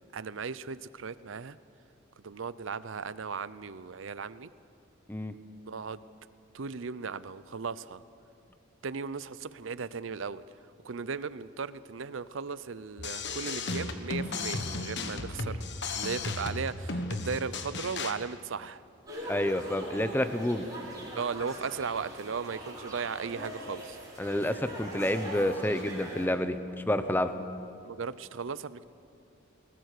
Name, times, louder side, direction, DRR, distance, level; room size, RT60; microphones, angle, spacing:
voice 1, 0.1-1.6 2.2-4.5 5.7-6.0 6.5-8.0 8.8-10.4 10.8-15.6 15.9-18.8 21.2-24.0 27.8-28.8, right 5 dB, 70° right, 17 dB, 0.6 m, -36 dB
sound 1, 13.0-18.1, left 3 dB, 60° left, 1.4 m, -35 dB
sound 2, 19.0-26.3, right 1 dB, 20° right, 7.1 m, -42 dB
voice 2, 19.3-20.7 24.2-26.6 26.9-27.3, left 1 dB, 10° left, 10 dB, 0.9 m, -29 dB
22.0 x 19.5 x 6.7 m, 2.5 s
head